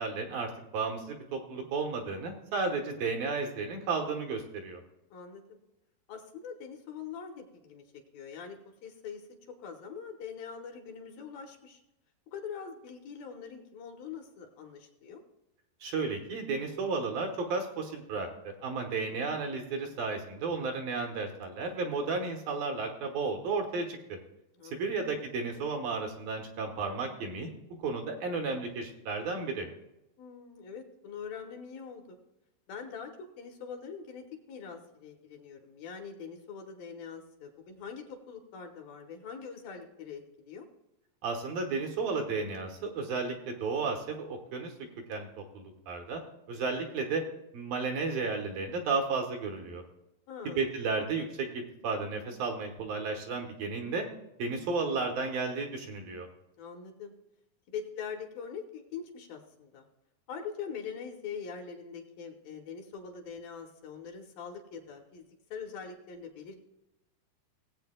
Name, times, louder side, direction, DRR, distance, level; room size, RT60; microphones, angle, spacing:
voice 1, 0.0-4.8 15.8-24.2 24.6-27.5 27.8-29.7 41.2-44.7 45.1-46.2 46.5-47.2 47.5-49.8 50.5-54.1 54.4-56.3, right 4 dB, 70° right, 2 dB, 2.7 m, -33 dB
voice 2, 5.1-5.6 6.1-7.8 8.1-9.3 9.6-11.8 12.3-15.2 19.0-19.3 24.5-25.1 30.2-32.2 32.7-40.7 50.3-50.8 56.6-57.1 57.7-59.9 60.3-66.6, left 6 dB, 70° left, 3 dB, 2.6 m, -43 dB
19.0 x 8.1 x 2.2 m, 0.92 s
omnidirectional pair, 4.6 m